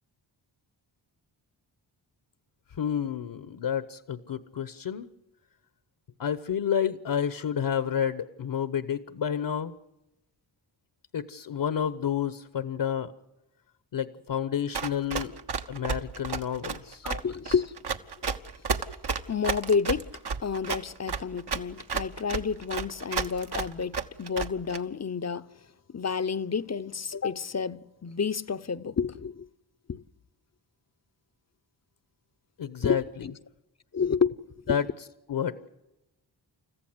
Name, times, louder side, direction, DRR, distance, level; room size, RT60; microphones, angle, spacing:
voice 1, 2.8-5.1 6.2-9.7 11.1-13.1 13.9-15.3 15.7-17.1 32.6-33.3 34.7-34.8 35.3-35.6, left 8 dB, 60° left, 1.1 m, -30 dB
Run, 14.7-24.8, right 5 dB, 55° right, 1.3 m, -31 dB
voice 2, 17.0-17.7 19.3-20.1 20.4-25.5 25.9-29.5 29.9-30.0 32.8-33.3 33.9-34.4 34.7-34.8, left 6 dB, 35° left, 0.8 m, -30 dB
30.0 x 14.5 x 8.1 m
cardioid pair, 55°, 48 cm